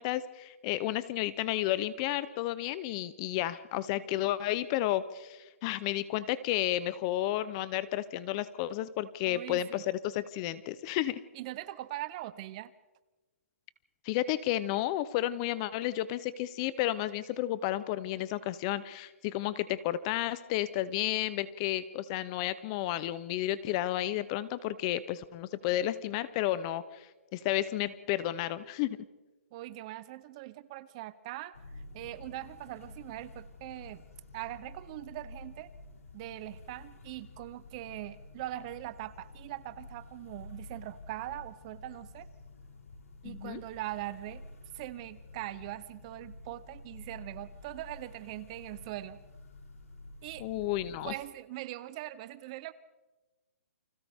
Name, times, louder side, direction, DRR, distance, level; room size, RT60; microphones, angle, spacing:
voice 1, 0.0-11.2 14.0-29.0 43.2-43.6 50.4-51.1, left 14 dB, 25° left, 17 dB, 0.5 m, -32 dB
voice 2, 9.2-9.8 11.3-12.7 29.5-34.1 34.3-35.7 36.1-42.3 43.2-44.4 44.7-49.2 50.2-50.5 51.0-52.7, right 15 dB, 25° right, 16 dB, 0.6 m, -41 dB
sound 1, 31.5-51.2, left 2 dB, 90° left, 6.9 m, -50 dB
29.5 x 25.0 x 3.5 m, 1.2 s
hypercardioid pair, 165°, 8 cm